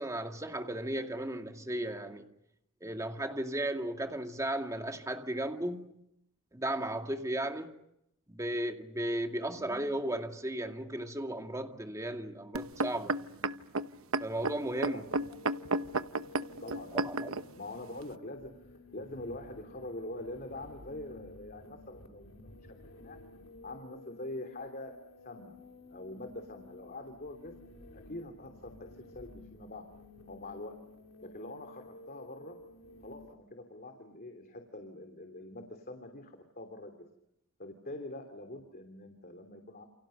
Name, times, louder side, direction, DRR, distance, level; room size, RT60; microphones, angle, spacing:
voice 1, 0.0-2.3 2.8-5.9 6.5-7.7 8.3-13.2 14.2-15.0 17.0-17.3, right 1 dB, 15° right, 2.3 m, -35 dB
sound 1, 12.5-17.4 18.1-18.2, right 3 dB, 90° right, 1.0 m, -32 dB
sound 2, 15.1-33.3, left 2 dB, 80° left, 3.1 m, -53 dB
voice 2, 16.6-17.3 17.6-18.5 18.9-23.2 23.6-25.0 25.2-25.5 25.9-27.5 27.9-28.9 29.1-29.8 30.3-30.7 31.2-32.6 33.0-36.9 37.6-39.9, left 2 dB, 45° left, 3.1 m, -44 dB
30.0 x 29.0 x 6.6 m
head